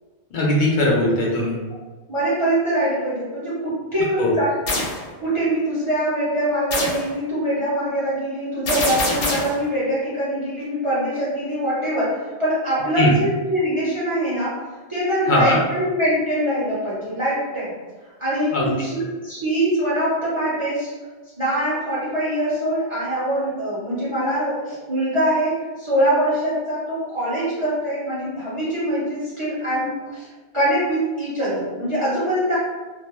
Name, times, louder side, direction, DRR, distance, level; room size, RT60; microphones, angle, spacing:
voice 1, 0.3-1.6 4.2-4.3 13.0-13.1 15.3-15.6 18.5-18.7, left 1 dB, 60° left, -4 dB, 0.5 m, -19 dB
voice 2, 2.1-4.5 5.2-14.6 14.9-17.7 18.2-18.9 19.2-20.9 21.4-30.3 30.5-32.6, right 1 dB, 35° right, -10 dB, 0.6 m, -23 dB
sound 1, 4.7-5.0 6.7-7.1 8.7-9.6, left 2 dB, 85° left, 1.0 m, -24 dB
2.3 x 2.1 x 2.9 m, 1.3 s
omnidirectional pair, 1.2 m